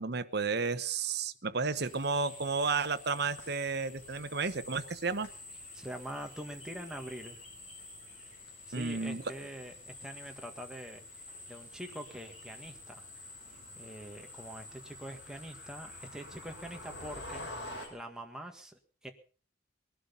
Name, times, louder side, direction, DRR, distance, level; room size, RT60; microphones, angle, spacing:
voice 1, 0.0-5.3 8.7-9.2, right 4 dB, 55° right, 10 dB, 1.0 m, -32 dB
sound 1, 1.7-17.9, left 2 dB, 45° left, 6.1 m, -50 dB
sound 2, 3.4-17.9, left 1 dB, 70° left, 5.9 m, -52 dB
voice 2, 5.7-7.4 8.7-19.1, right 1 dB, 5° right, 3 dB, 1.8 m, -45 dB
20.0 x 11.5 x 5.4 m, 0.41 s
head